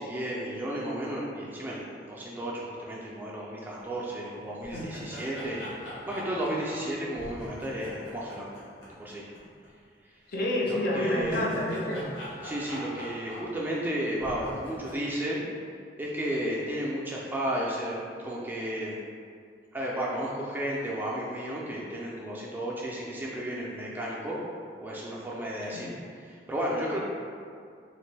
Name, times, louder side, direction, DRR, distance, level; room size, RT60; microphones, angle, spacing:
voice 1, 0.0-5.7 6.1-8.5 9.0-9.3 10.7-11.5 12.4-15.5 16.0-19.0 19.7-24.4 24.8-27.0, right 1 dB, 10° right, -5 dB, 0.3 m, -33 dB
sound 1, 3.8-3.9 4.3-9.4 9.6-9.7 10.9-13.9 14.2-15.0, equal, 90° left, 0.9 m, -42 dB
voice 2, 10.3-12.1 25.7-25.9, left 1 dB, 50° left, -2 dB, 0.4 m, -29 dB
2.9 x 2.5 x 3.2 m, 2.2 s
head